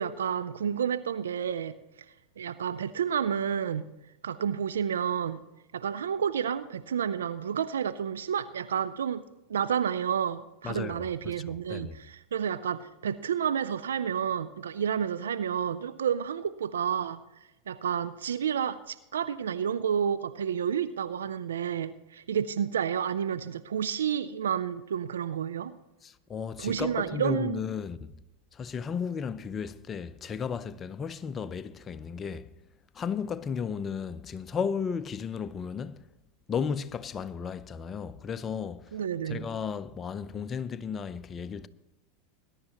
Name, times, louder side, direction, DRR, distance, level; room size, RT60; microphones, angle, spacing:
voice 1, 0.0-1.7 2.4-3.9 4.2-5.4 5.7-9.2 9.5-17.2 17.7-25.7 26.6-27.6 38.9-39.4, right 8 dB, 80° right, 0.4 m, -30 dB
voice 2, 10.6-11.9 26.0-28.1 28.5-32.5 32.9-36.1 36.5-38.9 39.3-41.7, left 6 dB, 30° left, 0.6 m, -34 dB
20.5 x 11.0 x 3.0 m
hypercardioid pair, 90°, 0 cm